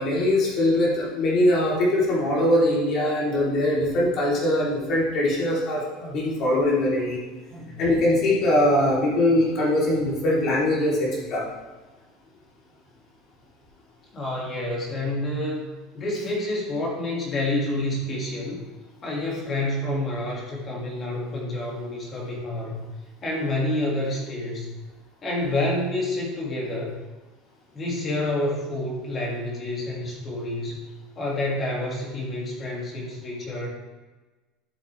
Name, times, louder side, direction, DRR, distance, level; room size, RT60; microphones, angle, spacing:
voice 1, 0.0-7.2 7.8-11.4, left 1 dB, 40° left, -5 dB, 3.5 m, -22 dB
voice 2, 7.5-7.8 14.1-15.7 15.9-18.6 19.0-22.8 23.2-24.7 25.2-27.0 27.7-30.8 31.2-33.7, left 1 dB, 20° left, -2 dB, 2.4 m, -28 dB
13.0 x 6.9 x 3.4 m, 1.2 s
cardioid pair, 170°, 0 cm